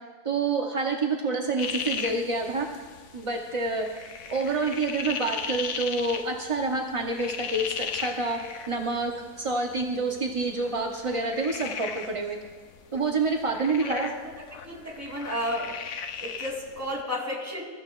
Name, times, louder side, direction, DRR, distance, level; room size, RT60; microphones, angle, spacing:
voice 1, 0.2-2.7 3.1-8.4 8.7-12.4 12.9-14.1, right 3 dB, 35° right, 1 dB, 0.5 m, -28 dB
sound 1, 1.6-17.0, left 7 dB, 60° left, 0.9 m, -37 dB
voice 2, 13.7-14.1 14.4-15.7 16.2-17.6, equal, 10° right, -3 dB, 2.9 m, -33 dB
21.5 x 13.0 x 2.4 m, 1.4 s
omnidirectional pair, 1.7 m